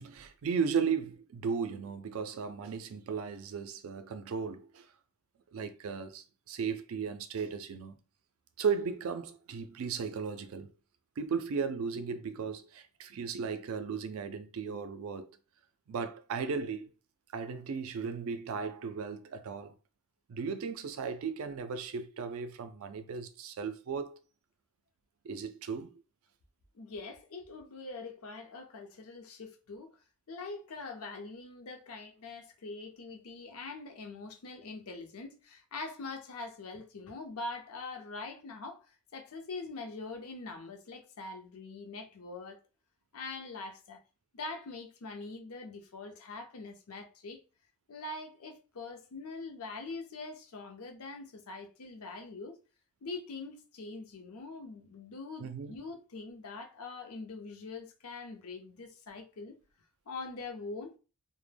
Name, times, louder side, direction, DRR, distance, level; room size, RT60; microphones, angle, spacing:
voice 1, 0.0-4.9 5.5-8.0 8.6-10.7 11.2-15.3 15.9-16.9 17.3-19.7 20.3-24.2 25.2-26.0 55.4-55.8, right 6 dB, 70° right, 0.4 m, -36 dB
voice 2, 26.7-29.9 30.3-38.9 39.1-42.6 43.1-44.0 44.3-47.4 47.9-52.6 53.0-59.6 60.1-60.9, left 3 dB, 75° left, 0.6 m, -43 dB
2.1 x 2.1 x 3.3 m
head